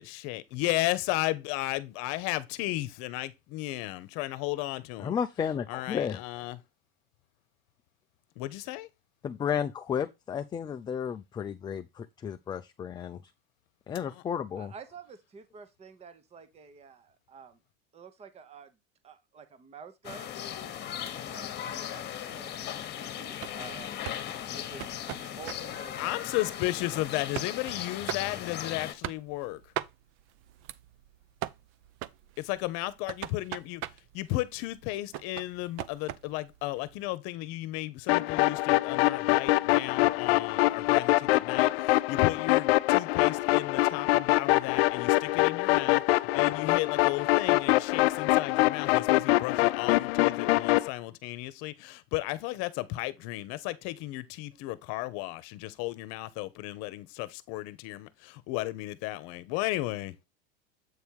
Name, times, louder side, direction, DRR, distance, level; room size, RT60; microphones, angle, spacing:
voice 1, 0.0-5.2 5.7-6.6 8.4-8.9 26.0-29.7 32.4-33.8 34.1-60.2, left 17 dB, 55° left, 1.0 m, -34 dB
voice 2, 5.0-6.2 9.2-13.2 13.9-14.7, left 8 dB, 15° left, 0.4 m, -33 dB
voice 3, 14.5-17.6 17.9-18.8 19.0-20.3 20.7-24.0 24.5-24.9 25.3-26.2, right 6 dB, 20° right, 1.0 m, -49 dB
sound 1, 20.0-28.9, left 10 dB, 35° left, 1.3 m, -38 dB
sound 2, 23.4-37.1, right 13 dB, 45° right, 0.6 m, -42 dB
sound 3, 38.1-50.9, left 18 dB, 85° left, 0.5 m, -24 dB
8.2 x 3.4 x 4.6 m
supercardioid pair, 130°, 30 cm